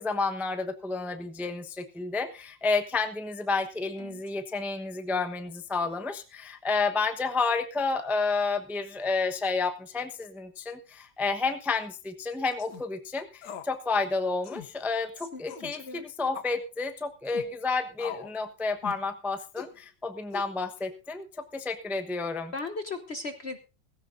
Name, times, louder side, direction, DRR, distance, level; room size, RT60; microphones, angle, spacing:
voice 1, 0.0-21.3 21.5-22.5, left 4 dB, ahead, 7 dB, 0.7 m, -30 dB
sound 1, 12.5-12.8 13.4-13.7 14.0-14.1 14.4-14.7 15.5-15.7 16.3-16.6 17.3-17.5 18.0-18.4 18.8-19.1 19.6-19.8 20.3-20.8, left 9 dB, 70° left, 1.4 m, -41 dB
voice 2, 22.5-23.6, left 3 dB, 45° left, 9 dB, 0.9 m, -36 dB
17.0 x 16.0 x 2.6 m, 0.31 s
omnidirectional pair, 1.9 m